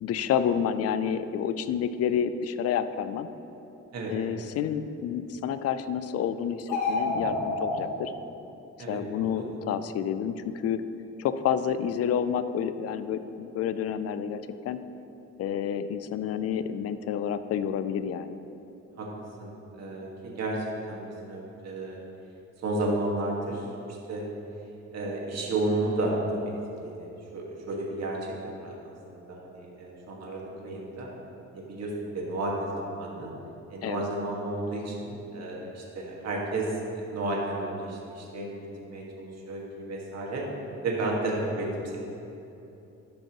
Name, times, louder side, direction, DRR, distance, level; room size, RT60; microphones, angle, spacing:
voice 1, 0.0-3.3 4.1-8.1 8.9-10.8 11.2-14.8 15.4-18.4 33.8-34.0, left 8 dB, 55° left, 12 dB, 0.4 m, -29 dB
sound 1, 6.6-7.8, left 3 dB, 70° left, 1.3 m, -28 dB
voice 2, 19.4-22.0 22.6-23.7 24.1-24.2 24.9-26.4 26.8-31.1 31.5-33.3 33.7-40.4 40.8-42.0, right 2 dB, 60° right, -3 dB, 1.7 m, -32 dB
12.5 x 5.4 x 3.0 m, 2.9 s
cardioid pair, 90°, 30 cm